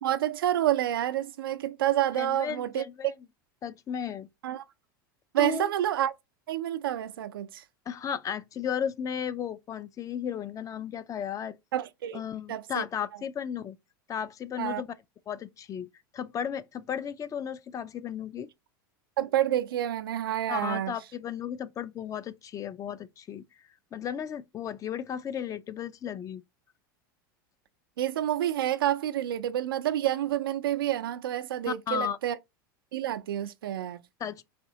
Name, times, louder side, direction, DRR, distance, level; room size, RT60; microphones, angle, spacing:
voice 1, 0.0-2.8 4.4-4.6 5.3-6.1 6.5-7.6 11.7-12.2 12.5-12.8 14.6-14.8 19.2-20.9 28.0-32.4 32.9-34.0, right 12 dB, 80° right, 0.5 m, -28 dB
voice 2, 2.2-3.1 3.6-4.3 5.4-5.7 7.9-11.6 12.1-13.8 14.1-14.9 15.3-15.9 16.1-18.5 20.5-23.4 23.9-26.4 31.7-32.2 34.2-34.4, left 8 dB, 30° left, 0.5 m, -34 dB
4.3 x 2.7 x 3.9 m
hypercardioid pair, 100°, 12 cm